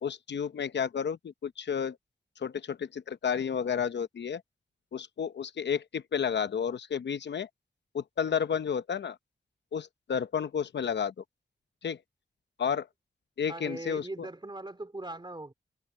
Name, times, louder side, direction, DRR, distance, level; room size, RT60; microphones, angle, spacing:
voice 1, 0.0-2.0 2.4-4.4 4.9-7.5 7.9-9.2 9.7-11.1 11.8-12.0 12.6-12.9 13.4-14.1, left 7 dB, 85° left, 0.8 m, -31 dB
voice 2, 13.5-15.5, right 2 dB, 25° right, 2.4 m, -40 dB
open air
cardioid pair, 60°, 18 cm